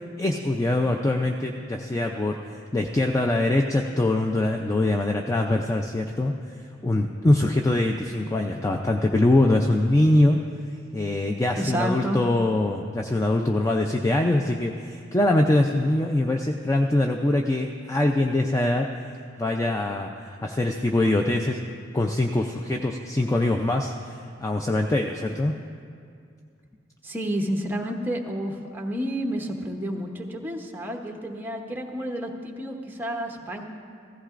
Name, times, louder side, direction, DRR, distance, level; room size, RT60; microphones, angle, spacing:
voice 1, 0.2-2.4 2.7-6.3 6.8-10.4 10.9-18.9 19.4-21.6 21.9-25.6, left 1 dB, 15° left, 3 dB, 0.4 m, -23 dB
voice 2, 11.6-12.2 27.0-33.7, equal, 10° right, 2 dB, 0.9 m, -30 dB
16.0 x 14.5 x 2.5 m, 2.3 s
head